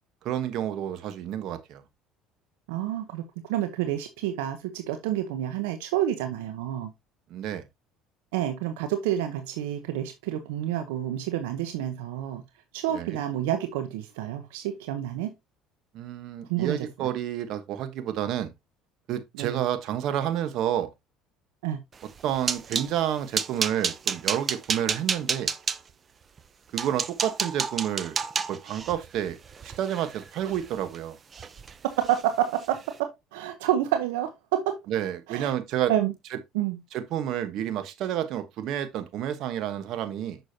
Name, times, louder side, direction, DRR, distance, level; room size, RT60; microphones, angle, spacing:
voice 1, 0.2-1.8 7.3-7.6 12.9-13.2 15.9-18.5 19.1-20.9 22.2-25.5 26.7-28.2 28.5-29.4 29.6-31.2 34.9-35.9 36.3-36.4 36.9-40.4, right 10 dB, 65° right, 1.2 m, -30 dB
voice 2, 2.7-3.2 3.5-6.9 8.3-12.4 12.7-15.3 16.5-17.1 19.4-19.6 21.6-21.8 32.0-34.8 35.3-35.5 35.9-36.1 36.5-36.8, right 11 dB, 85° right, 0.8 m, -29 dB
sound 1, 22.0-22.9 23.3-25.8 26.4-26.5 26.8-31.0 31.3-31.7 32.0-32.2 32.6-32.8, right 6 dB, 35° right, 0.7 m, -30 dB
6.7 x 6.1 x 2.8 m
supercardioid pair, 90°, 0 cm